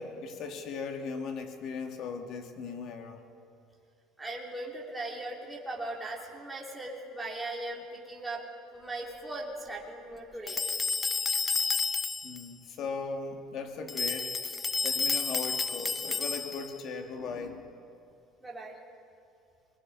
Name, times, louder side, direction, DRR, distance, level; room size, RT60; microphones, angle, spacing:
voice 1, 0.0-3.2 12.2-14.4 14.8-17.7, left 5 dB, 50° left, 4 dB, 2.3 m, -38 dB
voice 2, 4.2-8.4 8.7-10.6 18.4-18.7, right 2 dB, 5° right, -3 dB, 3.1 m, -39 dB
sound 1, 10.5-12.4 13.9-16.8, left 4 dB, 15° left, 0.4 m, -30 dB
24.5 x 20.5 x 5.5 m, 2.6 s
cardioid pair, 145°, 0 cm